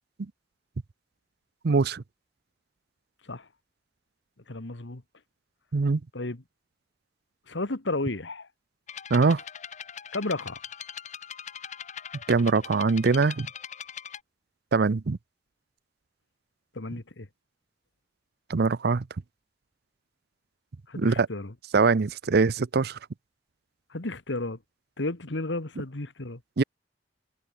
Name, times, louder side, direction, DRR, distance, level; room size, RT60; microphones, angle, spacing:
voice 1, 1.6-2.0 5.7-6.0 9.1-9.4 12.3-13.5 14.7-15.2 18.5-19.1 21.0-21.3 21.7-23.0 26.6-26.7, right 4 dB, 60° right, 0.6 m, -22 dB
voice 2, 4.5-5.0 6.1-6.4 7.5-8.5 10.1-10.6 16.7-17.3 20.9-21.5 23.9-24.6 25.0-26.4, left 2 dB, 80° left, 1.8 m, -33 dB
sound 1, 8.9-14.2, left 8 dB, 40° left, 1.0 m, -41 dB
head